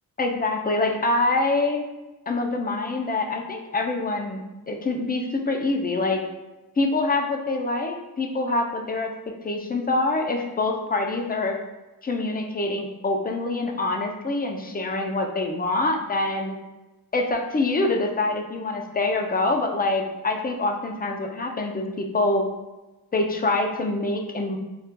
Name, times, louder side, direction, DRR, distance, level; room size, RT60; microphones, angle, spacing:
voice 1, 0.2-1.9 2.3-6.2 6.8-9.1 9.4-11.6 12.0-16.6 17.1-22.4 23.1-24.6, left 2 dB, 25° left, 3 dB, 0.4 m, -25 dB
4.0 x 2.4 x 2.2 m, 1.1 s
cardioid pair, 55°, 38 cm